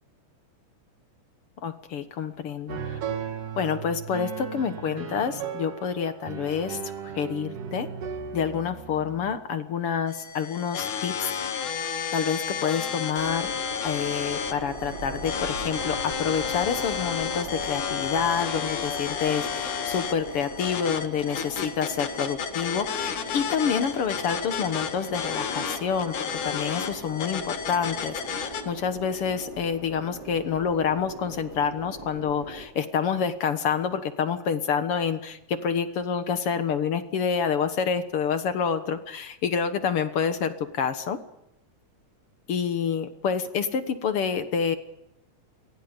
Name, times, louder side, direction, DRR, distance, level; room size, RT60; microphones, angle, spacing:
voice 1, 1.6-3.0 3.6-6.8 7.2-7.9 8.3-11.3 12.1-13.5 13.8-41.2 42.5-44.8, left 7 dB, 55° left, 10 dB, 1.9 m, -28 dB
sound 1, 2.7-9.4, right 7 dB, 80° right, 3.5 m, -36 dB
sound 2, 10.1-28.6, left 7 dB, 75° left, 3.3 m, -32 dB
sound 3, 13.1-32.7, right 2 dB, 30° right, 4.0 m, -40 dB
29.0 x 23.0 x 5.3 m, 0.86 s
omnidirectional pair, 3.6 m